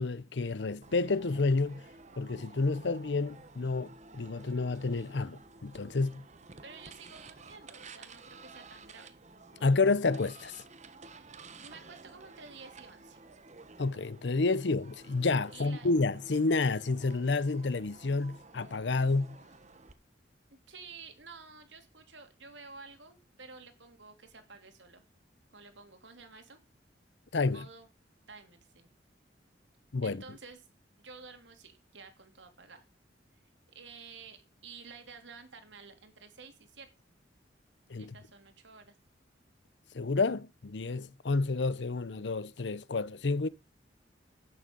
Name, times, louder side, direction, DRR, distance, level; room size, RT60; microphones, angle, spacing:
voice 1, 0.0-1.8 2.2-6.2 9.6-10.5 13.8-19.4 27.3-27.6 29.9-30.2 37.9-38.1 39.9-43.5, left 3 dB, 70° left, 0.7 m, -30 dB
sound 1, 0.8-19.9, right 3 dB, 40° right, 1.2 m, -53 dB
voice 2, 6.6-9.2 11.1-13.2 15.5-15.9 20.5-25.0 25.5-26.6 27.5-27.9 28.3-28.9 30.0-30.7 31.0-32.8 33.7-36.9 37.9-39.0, right 4 dB, 85° right, 2.9 m, -51 dB
11.5 x 9.0 x 5.3 m
head